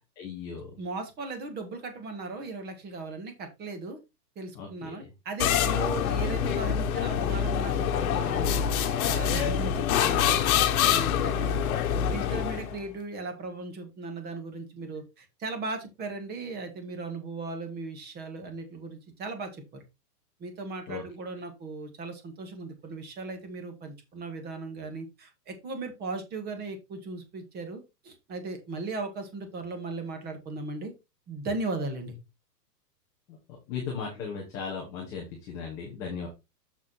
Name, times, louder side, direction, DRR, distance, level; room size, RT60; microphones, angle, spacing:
voice 1, 0.2-0.7 4.5-5.0 12.2-12.4 20.9-21.0 33.3-33.4 33.7-36.3, left 6 dB, 5° left, -2 dB, 0.4 m, -37 dB
voice 2, 0.8-4.0 4.4-8.7 9.0-10.4 10.8-19.8 20.4-30.9 31.3-32.2, right 3 dB, 20° right, 6 dB, 1.8 m, -37 dB
sound 1, 5.4-12.8, left 9 dB, 55° left, 1.3 m, -26 dB
7.0 x 5.9 x 4.2 m, 0.24 s
hypercardioid pair, 150°, 50 cm